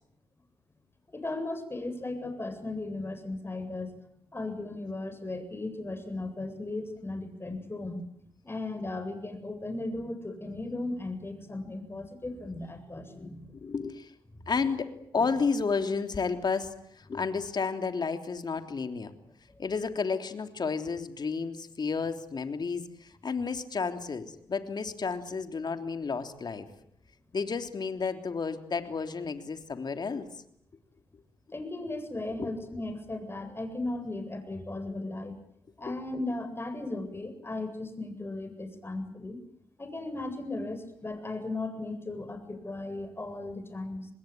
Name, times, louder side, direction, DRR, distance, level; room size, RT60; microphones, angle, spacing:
voice 1, 1.1-3.9 4.3-8.1 8.4-13.5 31.5-35.4 35.8-39.4 39.8-44.1, left 2 dB, 25° left, 8 dB, 7.9 m, -36 dB
voice 2, 13.1-14.1 14.5-19.1 19.6-26.7 27.3-30.3 32.4-32.5 35.9-36.0, left 5 dB, 50° left, 7 dB, 3.3 m, -32 dB
27.0 x 20.5 x 9.3 m, 0.70 s
supercardioid pair, 50°, 10 cm